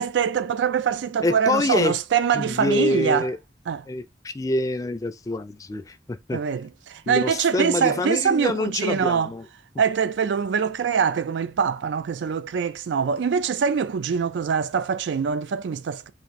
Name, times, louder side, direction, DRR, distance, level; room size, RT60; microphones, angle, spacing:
voice 1, 0.0-3.3 3.7-3.9 6.3-9.4 9.8-16.1, right 6 dB, 80° right, 0.4 m, -24 dB
voice 2, 1.2-1.9 2.3-3.4 3.9-6.4 7.1-9.4, left 2 dB, 20° left, 0.3 m, -26 dB
3.3 x 2.5 x 4.0 m
head